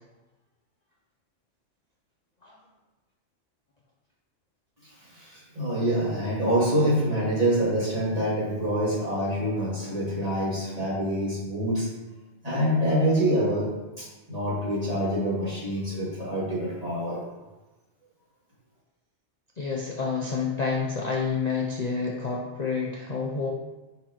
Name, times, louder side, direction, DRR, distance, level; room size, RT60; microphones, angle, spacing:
voice 1, 4.8-11.9 12.4-17.2, equal, 30° right, -9 dB, 2.7 m, -26 dB
voice 2, 19.6-23.5, left 5 dB, 40° left, -3 dB, 0.7 m, -29 dB
10.0 x 4.4 x 3.1 m, 1.1 s
omnidirectional pair, 1.3 m